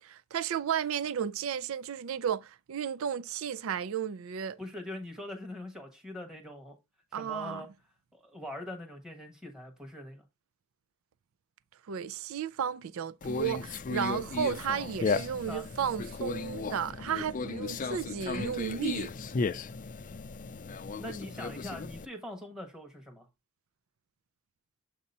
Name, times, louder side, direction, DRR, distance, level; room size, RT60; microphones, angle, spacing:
voice 1, 0.0-4.6 7.1-7.6 11.9-19.1, right 8 dB, 75° right, 0.4 m, -33 dB
voice 2, 4.6-6.8 7.1-7.7 8.1-10.2 15.5-15.6 21.0-23.3, left 1 dB, 5° right, 1.1 m, -42 dB
Conversation, 13.2-22.1, left 4 dB, 40° left, 0.4 m, -35 dB
7.3 x 2.8 x 5.3 m
head